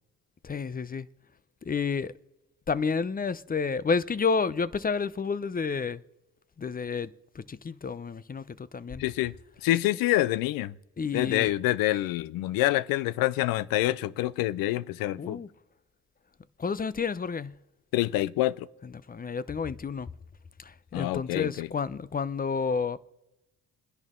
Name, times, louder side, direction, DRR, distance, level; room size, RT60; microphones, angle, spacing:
voice 1, 0.4-1.1 1.6-2.1 2.7-6.0 6.6-9.0 11.0-11.5 15.2-15.5 16.6-17.5 18.8-20.1 20.6-23.0, left 5 dB, 25° left, 0.7 m, -30 dB
voice 2, 9.0-9.3 9.6-10.7 11.1-15.4 17.9-18.7 20.9-21.7, left 16 dB, 90° left, 0.6 m, -26 dB
27.0 x 10.5 x 3.7 m
supercardioid pair, 70°, 34 cm